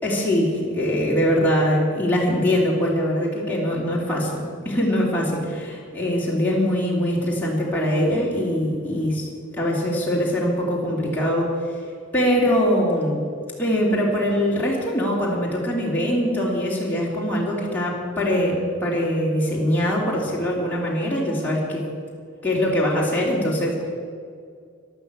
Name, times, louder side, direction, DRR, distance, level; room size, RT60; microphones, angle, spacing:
voice 1, 0.0-9.3 9.5-11.8 12.1-13.2 13.6-21.8 22.4-23.9, equal, 10° left, -5 dB, 3.0 m, -22 dB
12.5 x 12.0 x 8.2 m, 2.2 s
head